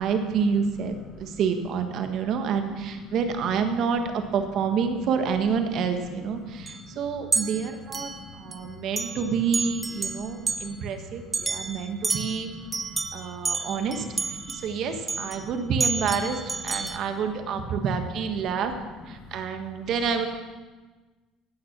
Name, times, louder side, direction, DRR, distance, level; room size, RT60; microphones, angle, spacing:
voice 1, 0.0-8.1 8.4-12.5 13.1-14.0 14.5-18.7 19.1-20.3, right 6 dB, 60° right, 6 dB, 1.5 m, -28 dB
voice 2, 1.0-1.4 2.0-2.3 2.7-2.8 3.1-3.2 5.8-5.9 6.2-7.0 7.4-8.7 9.0-9.2 10.1-13.0 13.6-14.6 14.9-15.5 15.9-16.0 16.4-17.7 18.4-19.1 19.7-19.9, left 3 dB, 60° left, -2 dB, 3.7 m, -46 dB
sound 1, 5.4-5.5 6.7-6.8 7.3-8.6 9.0-9.3 9.5-10.7 11.3-15.4 15.8-17.0, right 4 dB, 25° right, 0.8 m, -30 dB
16.0 x 6.1 x 6.1 m, 1.3 s
supercardioid pair, 100°, 0 cm